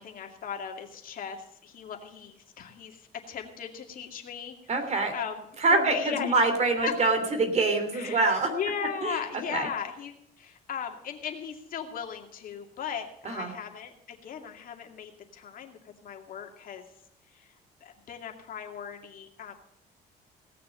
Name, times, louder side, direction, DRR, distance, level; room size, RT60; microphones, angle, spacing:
voice 1, 0.0-4.5 5.1-5.5 5.7-6.4 6.8-6.9 7.9-16.8 17.3-17.5 17.8-19.5, left 8 dB, 55° left, 3 dB, 2.3 m, -37 dB
voice 2, 4.7-5.1 5.6-8.5 9.0-9.1 9.5-9.7 13.2-13.5, right 3 dB, 40° right, 6 dB, 3.1 m, -25 dB
17.5 x 6.7 x 8.3 m, 0.72 s
cardioid pair, 110°, 17 cm